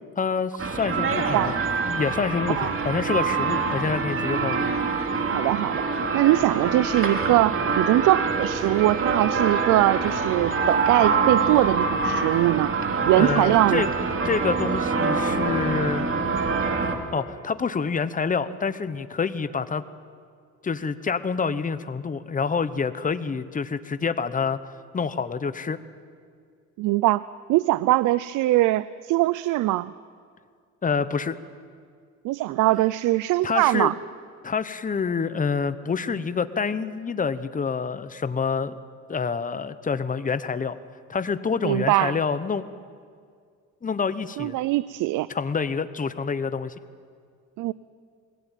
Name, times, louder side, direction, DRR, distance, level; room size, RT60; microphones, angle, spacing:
voice 1, 0.2-1.5 1.9-4.7 13.1-13.9 14.2-16.0 17.1-19.8 20.6-24.6 24.9-25.8 30.8-31.4 33.4-33.9 34.4-38.8 39.1-40.7 41.1-42.6 43.8-44.6 45.3-46.7, left 5 dB, 25° left, 12 dB, 1.0 m, -27 dB
sound 1, 0.6-17.0, right 4 dB, 45° right, 2.6 m, -25 dB
voice 2, 5.3-5.9 6.1-12.7 13.1-13.8 26.8-27.2 27.5-29.9 32.2-33.9 41.6-42.2 44.4-45.3 47.6-47.7, right 17 dB, 90° right, 17 dB, 0.5 m, -22 dB
21.0 x 16.5 x 9.1 m, 2.1 s
cardioid pair, 90°, 30 cm